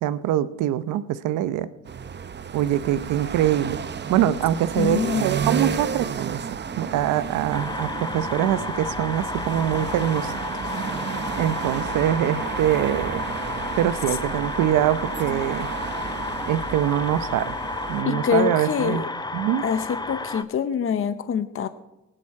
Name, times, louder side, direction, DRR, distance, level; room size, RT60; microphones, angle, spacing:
voice 1, 0.0-1.7 2.5-3.8 4.1-10.3 11.4-13.2 13.8-15.7 16.5-17.6 17.9-19.0 19.3-19.6, right 11 dB, 90° right, 15 dB, 0.8 m, -24 dB
sound 1, 1.9-18.0, right 6 dB, 35° right, 0.8 m, -32 dB
voice 2, 4.8-5.3 18.0-19.1 19.6-21.7, left 7 dB, 45° left, 12 dB, 0.8 m, -25 dB
sound 2, 7.5-20.4, left 3 dB, 15° left, 0.8 m, -32 dB
19.0 x 10.0 x 4.8 m, 1.0 s
cardioid pair, 90°, 30 cm